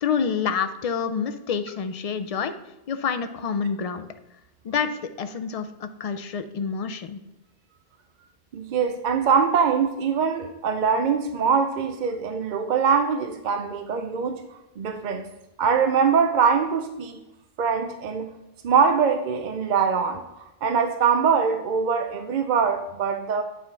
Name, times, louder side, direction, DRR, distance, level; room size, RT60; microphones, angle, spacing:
voice 1, 0.0-2.5 2.9-4.1 4.6-7.2, left 6 dB, 55° left, 10 dB, 0.4 m, -27 dB
voice 2, 8.5-14.4 14.8-15.3 15.6-17.2 17.6-18.3 18.6-23.4, right 6 dB, 55° right, 6 dB, 0.6 m, -23 dB
8.9 x 3.7 x 4.5 m, 0.95 s
omnidirectional pair, 1.1 m